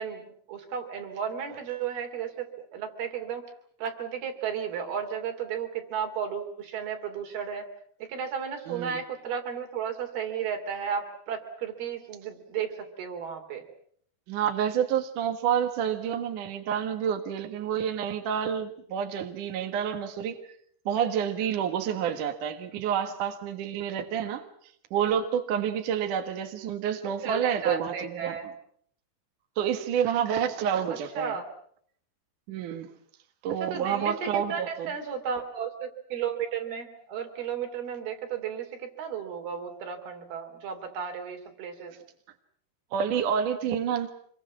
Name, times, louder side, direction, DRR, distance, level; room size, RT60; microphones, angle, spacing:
voice 1, 0.0-3.4 3.8-7.6 8.0-13.6 27.2-28.5 30.9-31.4 33.6-41.9, right 7 dB, 80° right, 5 dB, 5.0 m, -34 dB
voice 2, 8.7-9.0 14.3-20.4 20.9-24.4 24.9-28.4 29.6-31.4 32.5-32.9 33.4-34.9 42.9-44.1, right 8 dB, 60° right, 6 dB, 2.9 m, -28 dB
26.5 x 23.0 x 7.4 m, 0.64 s
omnidirectional pair, 4.4 m